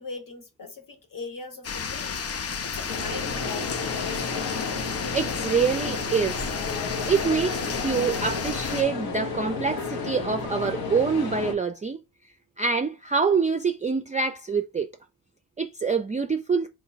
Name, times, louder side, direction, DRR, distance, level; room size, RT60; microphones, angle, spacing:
voice 1, 0.0-2.2 2.6-4.0, left 4 dB, 60° left, 1.2 m, -40 dB
sound 1, 1.6-8.8, left 6 dB, 40° left, 0.5 m, -32 dB
sound 2, 2.9-11.5, left 4 dB, 80° left, 0.8 m, -32 dB
voice 2, 5.1-6.4 7.1-12.0 12.6-14.9 15.6-16.7, right 5 dB, 20° right, 0.3 m, -25 dB
4.5 x 2.1 x 3.9 m
cardioid pair, 60°, 36 cm